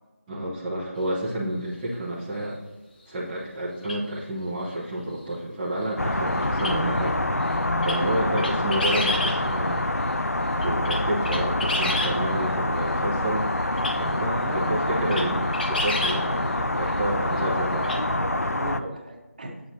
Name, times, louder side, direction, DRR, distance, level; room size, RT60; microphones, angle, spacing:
voice 1, 0.3-2.6 3.1-13.5 13.9-17.8, right 1 dB, 10° right, -11 dB, 0.9 m, -30 dB
sound 1, 3.8-4.0 6.6-6.7 7.8-8.0 8.4-9.4 10.6-12.1 13.8-13.9 14.6-14.7 15.1-15.3 15.5-16.2 17.8-18.0, left 1 dB, 40° left, 1.2 m, -28 dB
sound 2, 6.0-18.8, left 1 dB, 85° left, 0.6 m, -26 dB
voice 2, 7.9-8.5 14.3-14.9 16.9-19.6, right 1 dB, 35° right, 1 dB, 1.3 m, -36 dB
8.3 x 7.8 x 2.7 m, 1.2 s
figure-of-eight pair, 165°, 8 cm